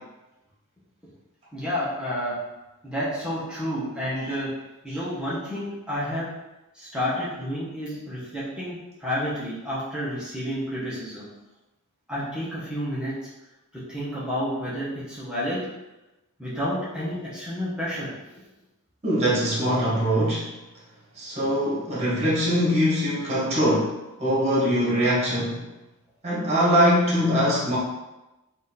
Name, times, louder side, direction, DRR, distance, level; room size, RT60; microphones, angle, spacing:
voice 1, 1.5-2.4 2.8-4.5 4.8-6.3 6.7-11.3 12.1-13.1 13.9-15.7 16.4-18.1, equal, 5° right, -10 dB, 1.1 m, -30 dB
voice 2, 19.0-20.5 21.2-23.9 24.2-25.6 26.2-27.8, equal, 30° right, -6 dB, 1.4 m, -22 dB
3.9 x 2.7 x 4.0 m, 1.0 s
head